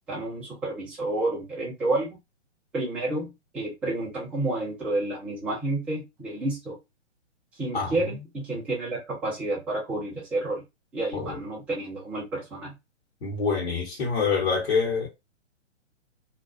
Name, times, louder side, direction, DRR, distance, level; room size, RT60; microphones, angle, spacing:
voice 1, 0.1-2.2 2.7-6.8 7.6-10.6 10.9-12.7, right 2 dB, 5° right, 0.4 m, -30 dB
voice 2, 13.2-15.1, left 5 dB, 60° left, 1.0 m, -26 dB
2.3 x 2.3 x 2.3 m
hypercardioid pair, 140°, 36 cm